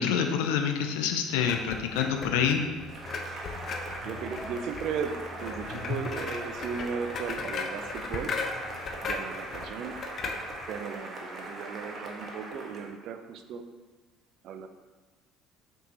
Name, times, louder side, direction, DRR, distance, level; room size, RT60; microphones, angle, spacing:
voice 1, 0.0-2.6, left 7 dB, 75° left, 5 dB, 0.6 m, -27 dB
sound 1, 1.4-10.8, left 4 dB, 45° left, 0.8 m, -37 dB
Cheering / Applause, 2.9-12.9, right 2 dB, 45° right, 1.3 m, -41 dB
voice 2, 4.0-8.4 9.0-10.0 10.7-13.7 14.4-14.7, right 6 dB, 60° right, 8 dB, 0.5 m, -36 dB
6.1 x 5.4 x 3.0 m, 1.3 s
hypercardioid pair, 65°, 0 cm